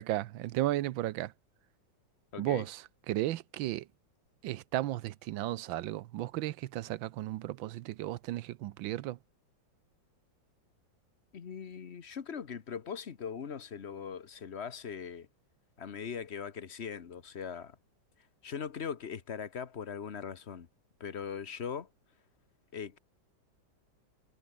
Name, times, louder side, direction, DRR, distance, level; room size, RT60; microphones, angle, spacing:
voice 1, 0.0-1.3 2.4-3.9 4.4-9.2, right 15 dB, 90° right, 1.5 m, -34 dB
voice 2, 2.3-2.6 11.3-15.3 15.8-17.7 18.4-20.7 21.0-21.9 22.7-23.0, left 7 dB, 40° left, 1.2 m, -40 dB
omnidirectional pair, 2.1 m